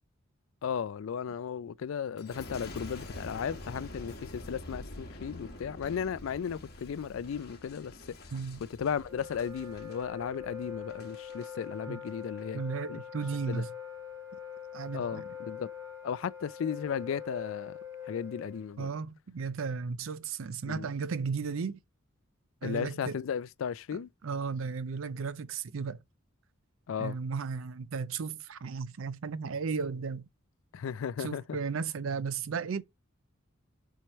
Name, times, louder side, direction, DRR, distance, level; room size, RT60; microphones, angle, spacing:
voice 1, 0.6-7.9 8.8-12.6 12.9-13.0 13.5-13.7 14.9-15.7 16.0-17.8 18.1-18.9 20.7-20.9 22.6-24.1 26.9-27.2 30.7-31.6, left 7 dB, 70° left, 0.4 m, -35 dB
Boom, 2.2-11.5 12.1-12.5, left 1 dB, 50° left, 1.4 m, -46 dB
Wind instrument woodwind instrument, 8.8-18.7, left 8 dB, 15° right, 1.7 m, -43 dB
voice 2, 12.5-13.7 14.7-15.3 18.8-21.8 22.6-23.2 23.9-26.0 27.0-30.3 31.2-32.8, right 5 dB, 75° right, 0.5 m, -35 dB
7.6 x 4.6 x 3.0 m
head